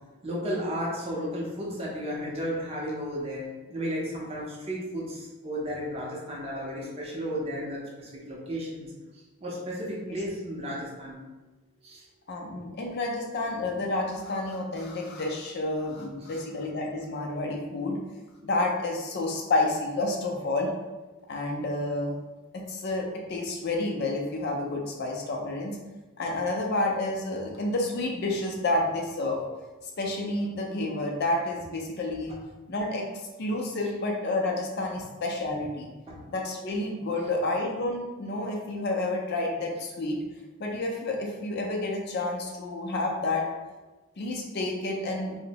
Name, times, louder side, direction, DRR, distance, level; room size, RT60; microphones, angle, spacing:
voice 1, 0.2-8.9 9.4-11.2 11.8-12.1 36.1-36.2, equal, 25° right, -4 dB, 0.5 m, -33 dB
voice 2, 12.3-18.0 18.4-20.7 21.3-22.1 22.5-25.8 26.2-29.4 29.8-32.4 32.7-33.0 33.4-35.9 36.3-40.2 40.6-43.4 44.2-45.4, left 2 dB, 45° left, 0 dB, 0.4 m, -30 dB
2.6 x 2.0 x 2.8 m, 1.2 s
head